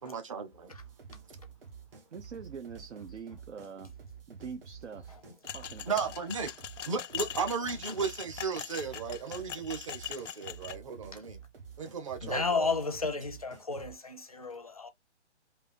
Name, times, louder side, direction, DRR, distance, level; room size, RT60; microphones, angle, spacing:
voice 1, 0.0-0.7 5.9-6.5 6.8-11.4 11.8-12.7, right 5 dB, 25° right, 0.7 m, -35 dB
sound 1, 0.7-13.9, right 6 dB, 50° right, 1.6 m, -50 dB
voice 2, 2.1-3.9 4.3-5.2 5.5-6.0, right 6 dB, 75° right, 0.8 m, -44 dB
sound 2, 5.4-10.8, left 9 dB, 80° left, 0.5 m, -41 dB
voice 3, 12.2-14.9, left 4 dB, 30° left, 0.5 m, -32 dB
3.3 x 2.7 x 4.2 m
hypercardioid pair, 165°, 36 cm